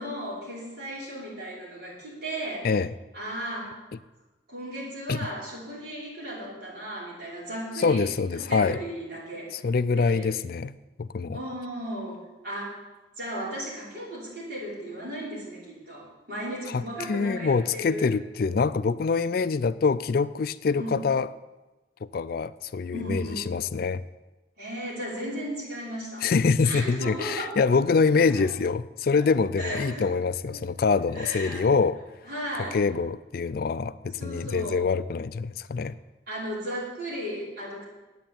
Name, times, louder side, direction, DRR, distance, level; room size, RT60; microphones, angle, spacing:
voice 1, 0.0-2.7 3.1-3.8 4.5-9.6 9.9-10.3 11.3-12.8 13.2-18.1 20.8-21.0 22.9-23.5 24.6-26.3 26.6-27.6 28.4-28.5 29.1-29.3 29.6-30.1 30.5-30.6 31.1-31.6 32.3-32.8 34.2-34.8 36.3-37.8, equal, 55° right, -6 dB, 5.7 m, -35 dB
voice 2, 7.8-8.8 9.5-11.4 16.7-16.8 17.1-21.3 22.0-24.0 26.2-32.0 32.7-36.0, left 4 dB, 50° left, 14 dB, 0.4 m, -25 dB
9.3 x 8.7 x 9.0 m, 1.1 s
head